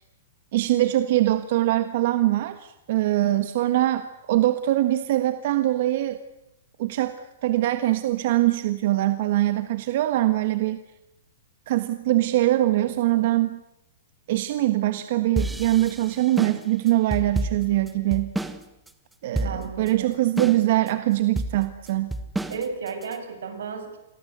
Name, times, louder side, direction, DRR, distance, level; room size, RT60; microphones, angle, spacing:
voice 1, 0.5-6.2 6.8-7.2 7.4-10.8 11.7-13.6 14.3-18.3 19.2-22.1, right 15 dB, 45° right, 10 dB, 1.4 m, -23 dB
sound 1, 15.4-18.6 18.9-19.0 19.3-19.9 20.4-20.9 21.4-23.1, right 2 dB, 5° right, 1.3 m, -29 dB
voice 2, 19.4-20.1 22.5-24.0, right 5 dB, 80° right, 7 dB, 7.4 m, -33 dB
29.0 x 22.5 x 8.1 m, 0.90 s
hypercardioid pair, 165°, 0 cm